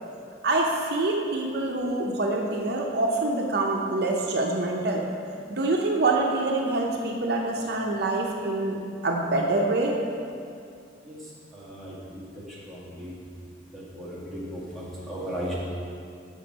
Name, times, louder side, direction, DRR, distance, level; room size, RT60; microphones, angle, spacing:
voice 1, 0.4-5.1 5.5-10.0, right 2 dB, 60° right, 0 dB, 0.6 m, -25 dB
voice 2, 12.7-13.1 14.0-15.6, equal, ahead, -8 dB, 1.7 m, -35 dB
6.7 x 6.3 x 5.1 m, 2.4 s
head